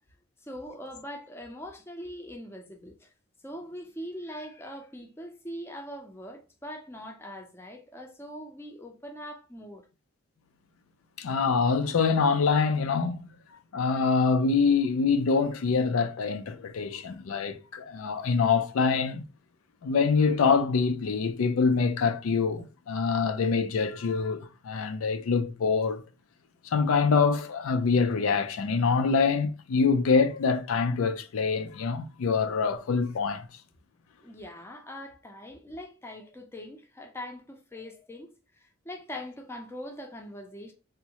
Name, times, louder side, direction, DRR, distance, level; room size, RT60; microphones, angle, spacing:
voice 1, 0.4-3.1 3.4-9.9 34.2-40.7, equal, 10° left, 0.4 m, -42 dB
voice 2, 11.2-13.3 13.7-19.2 19.8-26.0 26.6-33.5, left 5 dB, 85° left, 0.4 m, -25 dB
3.5 x 2.0 x 2.8 m
head